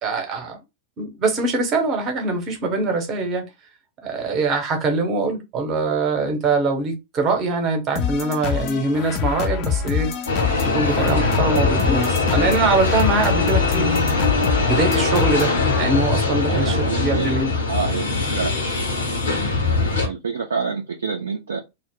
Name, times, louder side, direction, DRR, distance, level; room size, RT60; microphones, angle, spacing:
voice 1, 0.0-0.6 1.0-3.5 4.0-10.1 10.6-13.9 14.7-15.5 15.8-17.5, right 3 dB, 35° right, 0.9 m, -23 dB
sound 1, 8.0-16.2, left 8 dB, 40° left, 0.5 m, -26 dB
sound 2, 10.3-20.1, left 3 dB, 70° left, 0.8 m, -21 dB
voice 2, 16.5-17.4 17.7-18.6 19.7-21.6, right 5 dB, 70° right, 0.4 m, -27 dB
2.4 x 2.0 x 3.5 m
figure-of-eight pair, 90°, 0 cm